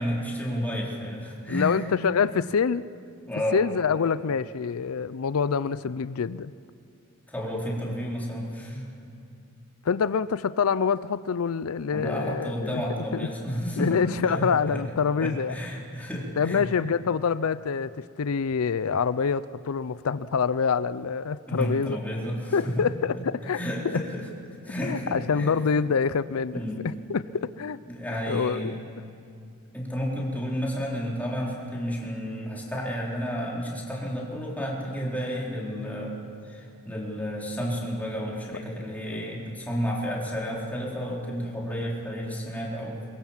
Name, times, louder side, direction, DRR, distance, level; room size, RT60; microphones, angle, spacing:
voice 1, 0.0-1.9 3.3-3.6 7.3-8.9 11.9-14.8 15.2-16.7 21.5-22.8 23.1-23.2 23.5-24.3 24.6-25.5 26.5-26.8 27.9-28.8 29.7-36.2 36.4-43.1, equal, 5° left, -4 dB, 4.0 m, -31 dB
voice 2, 1.5-2.8 3.5-6.5 9.8-12.8 13.1-13.3 13.8-15.5 16.4-22.0 22.5-23.6 23.9-24.0 24.8-26.6 26.8-27.8 28.3-28.7, left 6 dB, 75° left, 16 dB, 0.5 m, -26 dB
23.0 x 22.0 x 7.3 m, 2.5 s
head